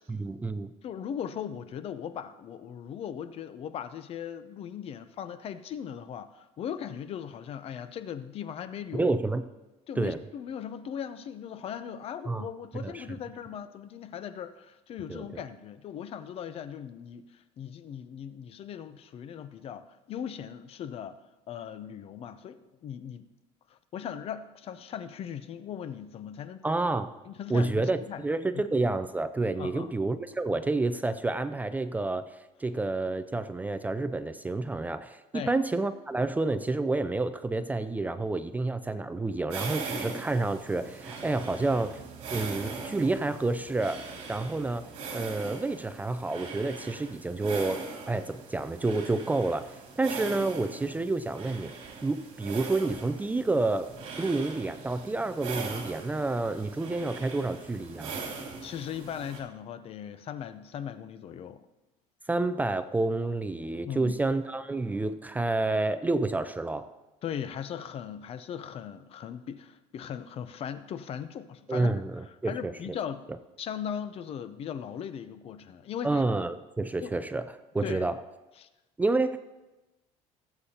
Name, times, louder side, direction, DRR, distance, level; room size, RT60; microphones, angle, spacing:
voice 1, 0.1-0.7 8.9-9.4 10.0-10.2 12.3-12.4 12.7-13.0 15.1-15.4 26.6-27.1 27.5-32.3 32.6-42.0 42.3-44.0 44.3-51.7 52.0-53.9 54.2-58.2 62.3-66.9 71.7-72.9 76.0-78.2 79.0-79.4, right 2 dB, 10° right, 10 dB, 0.4 m, -29 dB
voice 2, 0.8-9.1 9.9-21.2 21.5-23.3 23.7-26.6 27.2-28.2 28.5-28.6 29.6-29.9 35.3-35.5 58.6-61.6 63.9-64.1 67.2-71.9 72.2-73.2 73.6-76.2 77.0-77.1 77.8-78.1 78.6-78.7, left 8 dB, 45° left, 12 dB, 0.6 m, -38 dB
sound 1, 39.5-59.4, right 4 dB, 65° right, 2.8 m, -41 dB
19.0 x 8.1 x 2.9 m, 1.1 s
cardioid pair, 140°, 13 cm